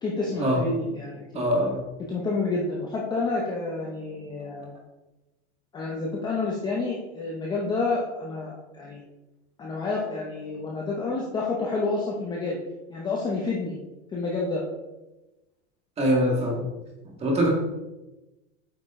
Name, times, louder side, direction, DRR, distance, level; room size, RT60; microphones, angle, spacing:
voice 1, 0.0-1.4 2.1-4.7 5.7-9.0 9.6-12.6 12.9-13.8 14.1-14.6 17.3-17.5, left 3 dB, 10° left, -3 dB, 0.7 m, -29 dB
voice 2, 1.3-1.8 16.0-16.7 17.2-17.5, equal, 15° right, -1 dB, 1.7 m, -23 dB
8.5 x 5.0 x 3.6 m, 1.0 s
supercardioid pair, 160°, 36 cm